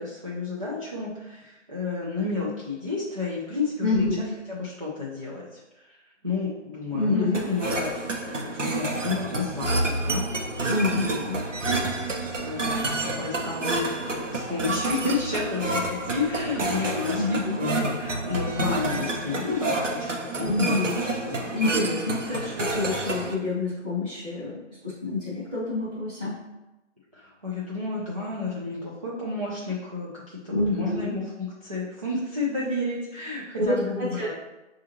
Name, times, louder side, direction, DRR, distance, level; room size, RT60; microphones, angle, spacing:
voice 1, 0.0-6.0 6.2-7.9 8.4-10.3 11.5-12.0 12.3-20.7 21.1-21.5 22.2-22.6 27.1-34.3, left 3 dB, 30° right, -8 dB, 0.5 m, -31 dB
voice 2, 3.8-4.2 6.9-7.4 10.7-11.4 17.1-17.6 20.4-20.9 21.2-26.4 30.5-31.1 33.5-33.8 34.1-34.3, left 2 dB, 5° right, -15 dB, 0.8 m, -27 dB
sound 1, 7.3-23.3, right 2 dB, 80° right, 0.8 m, -29 dB
5.9 x 2.5 x 2.8 m, 1.0 s
figure-of-eight pair, 155°, 36 cm